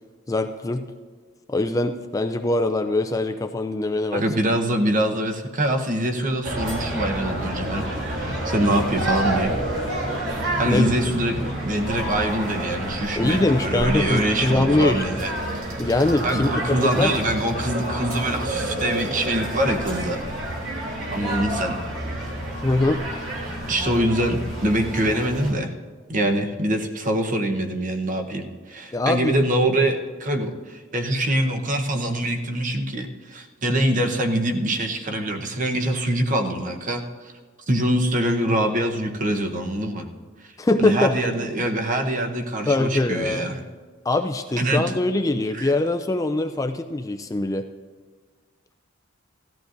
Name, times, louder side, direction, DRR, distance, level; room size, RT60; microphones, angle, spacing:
voice 1, 0.3-0.8 1.5-4.2 10.7-10.9 13.2-15.0 15.8-17.1 22.6-23.1 28.9-29.3 40.6-41.2 42.7-43.5 44.1-47.6, left 2 dB, 15° left, 7 dB, 0.4 m, -22 dB
voice 2, 4.1-7.9 8.2-9.6 10.6-15.3 16.2-20.2 21.1-21.8 23.7-25.7 26.1-37.0 37.7-40.1 40.8-43.6 44.6-44.8 45.5-45.7, right 1 dB, 40° right, 4 dB, 1.0 m, -24 dB
sound 1, 6.4-25.5, right 1 dB, 70° right, 3.0 m, -29 dB
17.0 x 14.0 x 2.6 m, 1.5 s
head